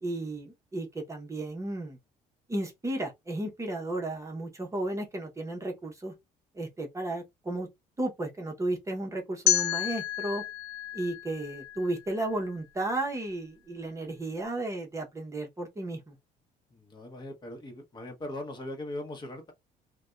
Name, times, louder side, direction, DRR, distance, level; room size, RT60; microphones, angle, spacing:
voice 1, 0.0-2.0 2.5-6.1 6.5-7.7 8.0-10.4 10.9-16.1, right 2 dB, 15° right, 0.8 m, -34 dB
sound 1, 9.5-12.4, left 11 dB, 75° left, 0.5 m, -30 dB
voice 2, 16.7-19.5, left 1 dB, 25° left, 0.9 m, -40 dB
2.6 x 2.2 x 2.2 m
cardioid pair, 110°, 17 cm